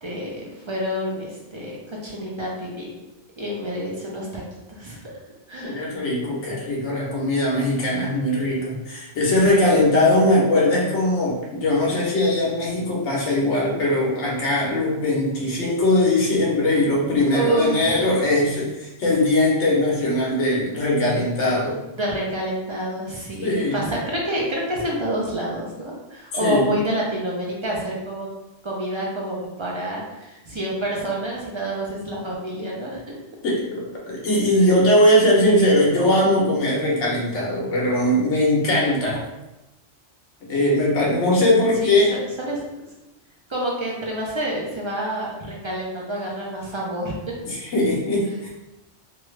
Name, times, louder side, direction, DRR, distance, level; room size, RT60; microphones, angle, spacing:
voice 1, 0.0-2.9 3.4-4.4 4.7-5.0 5.5-5.8 9.4-9.8 17.3-18.1 21.9-28.3 28.6-33.0 34.6-34.7 41.8-42.0 42.4-42.6 43.5-47.3, right 1 dB, 35° right, -4 dB, 0.5 m, -28 dB
voice 2, 5.6-21.8 23.4-23.8 26.4-26.7 33.4-39.3 40.5-42.1 47.4-48.5, left 1 dB, 75° left, -4 dB, 1.2 m, -20 dB
3.1 x 2.3 x 3.1 m, 0.98 s
omnidirectional pair, 1.2 m